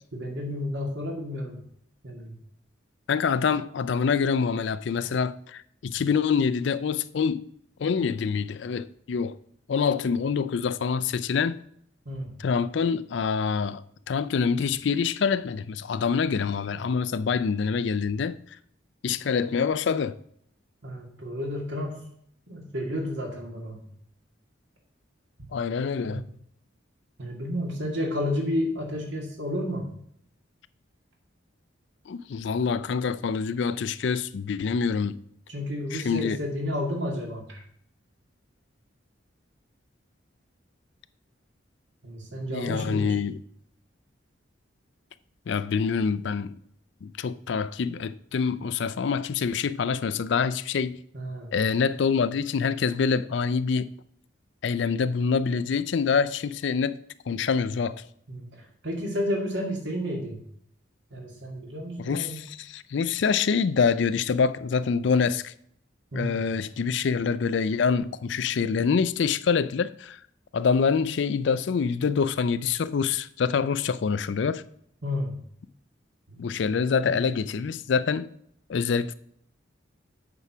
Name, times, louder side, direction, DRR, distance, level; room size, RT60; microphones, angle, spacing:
voice 1, 0.1-1.6 2.0-2.3 12.1-12.3 20.8-22.0 22.5-23.8 26.0-26.3 27.2-29.9 35.5-37.6 42.0-43.1 51.1-51.5 58.3-60.4 61.1-62.4 66.1-66.4 75.0-75.3 76.3-76.4 76.9-77.2, left 1 dB, 70° right, 2.1 m, -31 dB
voice 2, 3.1-7.5 7.8-9.4 9.7-11.6 12.4-13.8 14.1-18.4 19.0-20.2 25.5-26.2 32.1-35.2 35.9-36.4 42.5-43.4 45.5-46.6 47.0-51.0 51.5-53.9 54.6-57.0 57.3-58.0 62.0-65.5 66.1-70.2 70.5-74.6 76.4-78.3 78.7-79.1, left 5 dB, 65° left, 0.4 m, -26 dB
8.3 x 4.7 x 6.0 m
head